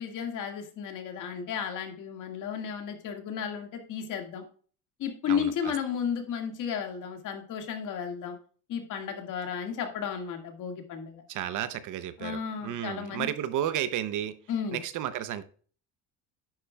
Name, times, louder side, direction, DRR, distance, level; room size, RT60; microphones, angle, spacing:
voice 1, 0.0-4.4 5.0-8.4 8.7-11.2 12.2-13.3 14.5-14.8, left 7 dB, 55° left, 4 dB, 1.9 m, -33 dB
voice 2, 5.3-5.7 11.3-14.3 14.7-15.4, right 11 dB, 50° right, 13 dB, 0.7 m, -32 dB
10.5 x 8.5 x 2.3 m, 0.43 s
cardioid pair, 145°, 38 cm